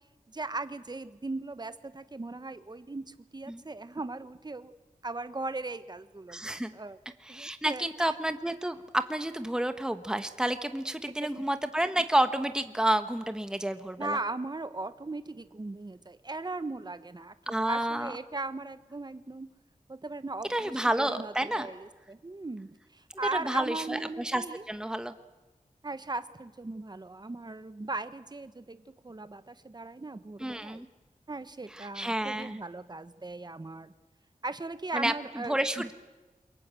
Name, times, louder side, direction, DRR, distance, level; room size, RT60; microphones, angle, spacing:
voice 1, 0.3-4.7 5.0-7.0 7.3-8.1 11.2-11.4 14.0-19.5 19.9-20.7 21.0-24.6 25.8-30.8 31.3-33.9 34.4-35.8, right 2 dB, 30° right, 12 dB, 1.1 m, -38 dB
voice 2, 6.3-6.7 7.2-14.2 17.5-18.1 20.5-21.7 23.1-25.1 30.4-30.9 31.7-32.6 34.9-35.9, right 1 dB, 5° right, 9 dB, 1.2 m, -30 dB
27.5 x 23.0 x 7.7 m, 1.1 s
wide cardioid pair, 85°, 14 cm